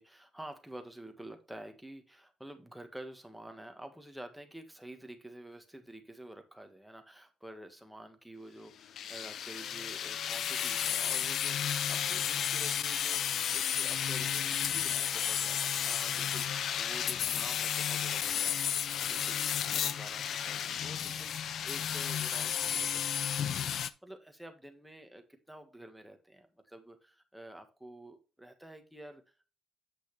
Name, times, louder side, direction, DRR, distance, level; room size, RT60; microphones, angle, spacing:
voice 1, 0.0-18.6 18.8-29.5, right 1 dB, 5° right, 5 dB, 1.7 m, -49 dB
sound 1, 9.0-23.9, left 9 dB, 65° left, 0.6 m, -32 dB
8.4 x 6.0 x 3.4 m, 0.34 s
cardioid pair, 90°, 0 cm